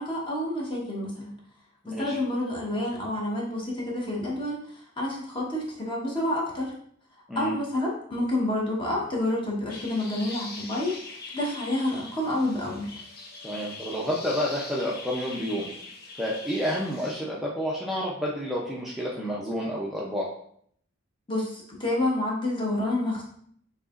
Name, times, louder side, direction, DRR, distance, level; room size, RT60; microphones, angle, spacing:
voice 1, 0.0-1.3 1.8-6.7 7.3-13.0 21.3-23.2, left 1 dB, 25° left, -3 dB, 1.1 m, -29 dB
voice 2, 1.8-2.2 7.3-7.5 13.4-15.7 16.2-20.3, equal, ahead, -5 dB, 0.5 m, -30 dB
sound 1, 9.7-17.1, left 3 dB, 50° left, 0.7 m, -42 dB
6.5 x 2.8 x 2.4 m, 0.63 s
head